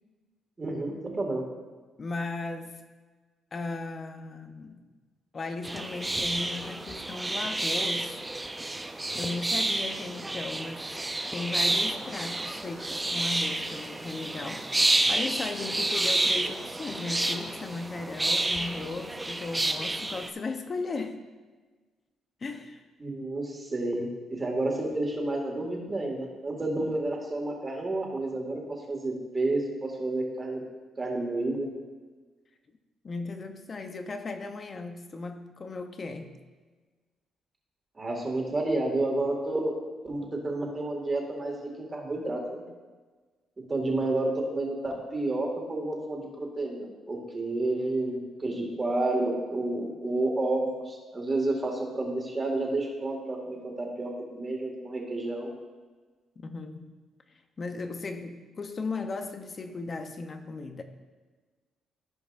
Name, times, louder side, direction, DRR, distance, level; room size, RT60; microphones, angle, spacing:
voice 1, 0.6-1.4 23.0-28.6 28.9-30.6 31.0-31.7 38.0-39.7 40.0-42.6 43.6-55.5, right 2 dB, 30° right, 0 dB, 2.1 m, -30 dB
voice 2, 2.0-2.8 3.5-4.9 5.3-8.2 9.1-10.9 11.3-21.3 22.4-22.8 33.0-36.3 56.4-57.0 57.6-60.8, left 3 dB, 40° left, 7 dB, 0.8 m, -36 dB
sound 1, 5.6-20.3, right 2 dB, 15° right, 0.5 m, -30 dB
15.5 x 5.2 x 2.6 m, 1.4 s
cardioid pair, 90°, 0 cm